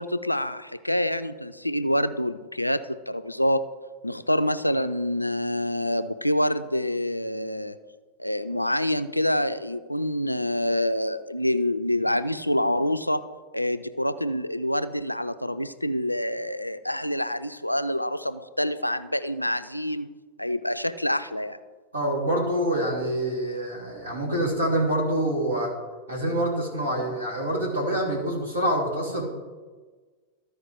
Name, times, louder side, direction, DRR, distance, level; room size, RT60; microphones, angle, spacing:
voice 1, 0.0-3.6 4.0-7.8 8.2-13.2 13.5-20.1 20.4-21.6, left 1 dB, 90° left, 12 dB, 0.4 m, -26 dB
voice 2, 21.9-25.7 26.1-29.3, right 1 dB, 75° right, -1 dB, 2.7 m, -26 dB
13.0 x 5.0 x 4.5 m, 1.4 s
figure-of-eight pair, 90°, 0 cm